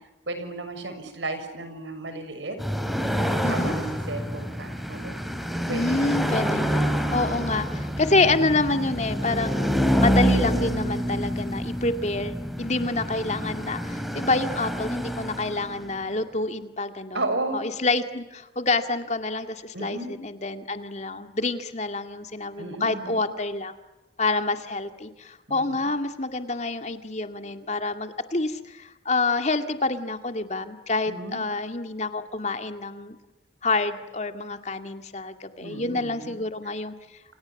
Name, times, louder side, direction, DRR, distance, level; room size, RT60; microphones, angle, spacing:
voice 1, 0.3-2.6 3.2-5.2 5.7-6.2 17.1-17.6 19.7-20.1 22.6-23.3 25.5-25.8 31.1-31.4 35.6-36.4, right 2 dB, 85° right, 9 dB, 6.4 m, -34 dB
sound 1, 2.6-16.0, equal, ahead, 2.9 m, -27 dB
voice 2, 3.4-3.7 5.7-17.2 17.5-23.7 24.2-33.2 33.6-36.9, left 3 dB, 40° left, 8 dB, 2.2 m, -27 dB
30.0 x 27.5 x 7.2 m, 1.0 s
head